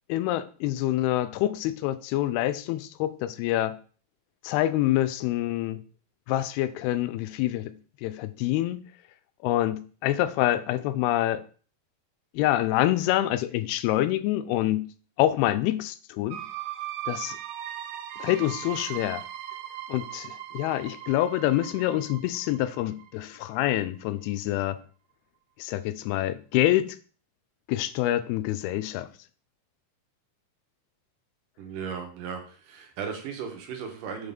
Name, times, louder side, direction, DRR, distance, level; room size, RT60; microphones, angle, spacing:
voice 1, 0.1-3.8 4.4-5.8 6.3-7.8 8.0-8.8 9.4-11.4 12.3-14.9 15.2-16.4 17.1-17.4 18.2-19.2 19.9-24.8 25.6-26.9 27.7-29.1, left 14 dB, 90° left, 2.5 m, -26 dB
sound 1, 16.3-23.9, right 13 dB, 90° right, 2.7 m, -39 dB
voice 2, 31.6-34.3, right 6 dB, 70° right, 2.4 m, -36 dB
7.0 x 3.7 x 5.3 m
omnidirectional pair, 4.4 m